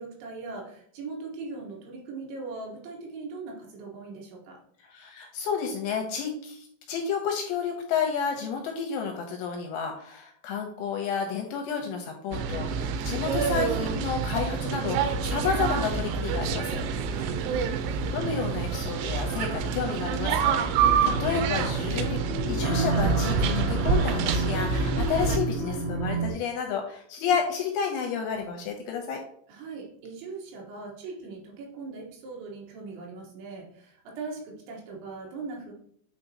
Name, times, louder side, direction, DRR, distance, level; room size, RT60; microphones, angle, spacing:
voice 1, 0.0-4.6 16.9-17.8 29.5-35.7, right 4 dB, 75° right, 0 dB, 3.4 m, -40 dB
voice 2, 4.8-17.3 18.1-22.2 22.5-29.2, left 6 dB, 80° left, 3 dB, 2.6 m, -31 dB
capemay ferry barlong, 12.3-25.4, right 6 dB, 90° right, 3.2 m, -27 dB
sound 1, 20.8-26.3, right 3 dB, 55° right, 3.9 m, -30 dB
8.8 x 4.2 x 2.8 m, 0.65 s
omnidirectional pair, 5.6 m